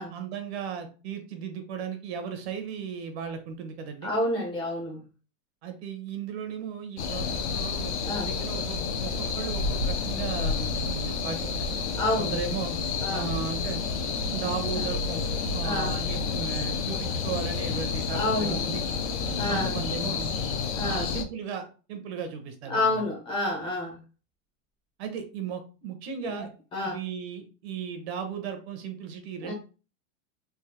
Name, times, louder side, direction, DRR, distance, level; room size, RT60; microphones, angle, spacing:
voice 1, 0.0-4.1 5.6-11.7 12.2-12.7 13.1-13.8 14.3-15.2 15.5-18.8 19.5-20.3 20.8-23.1 25.0-26.5 26.8-29.5, right 6 dB, 50° right, 6 dB, 1.0 m, -36 dB
voice 2, 4.0-5.0 8.0-8.3 11.9-12.3 13.0-13.3 14.7-14.9 15.6-16.0 18.1-18.7 19.4-19.7 20.7-21.1 22.7-24.0 26.2-26.4 26.7-27.0 29.4-29.5, left 2 dB, 10° left, 0 dB, 0.7 m, -29 dB
sound 1, 7.0-21.2, left 5 dB, 55° left, 0.7 m, -30 dB
3.6 x 2.7 x 2.8 m, 0.34 s
supercardioid pair, 170°, 41 cm